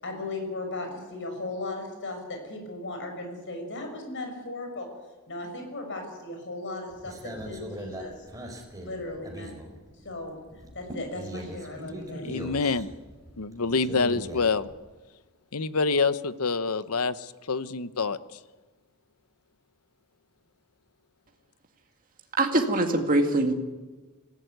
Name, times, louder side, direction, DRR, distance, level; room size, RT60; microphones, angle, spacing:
voice 1, 0.0-4.9 5.3-8.1 8.8-9.6 10.0-10.4 10.7-12.3, left 2 dB, 55° left, 4 dB, 6.4 m, -36 dB
sound 1, 6.9-10.2 10.5-14.7, equal, 15° right, 4.2 m, -40 dB
voice 2, 12.1-12.9 13.4-14.7 15.5-18.4, left 4 dB, 80° left, 14 dB, 1.0 m, -27 dB
voice 3, 22.4-23.5, right 2 dB, 40° right, 3 dB, 2.0 m, -23 dB
26.0 x 16.0 x 9.4 m, 1.2 s
head